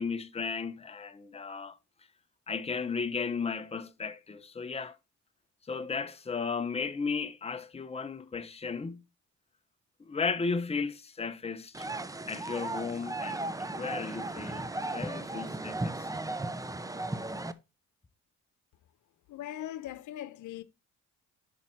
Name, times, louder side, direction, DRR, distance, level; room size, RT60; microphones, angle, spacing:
voice 1, 0.0-1.8 2.5-5.0 5.7-9.0 10.0-11.9 12.3-13.4 13.8-16.1, left 5 dB, 20° left, 0.9 m, -35 dB
sound 1, 11.7-17.5, right 2 dB, 10° right, 0.7 m, -36 dB
voice 2, 19.3-20.6, left 12 dB, 80° left, 0.9 m, -40 dB
9.4 x 5.7 x 4.6 m
cardioid pair, 90°, 30 cm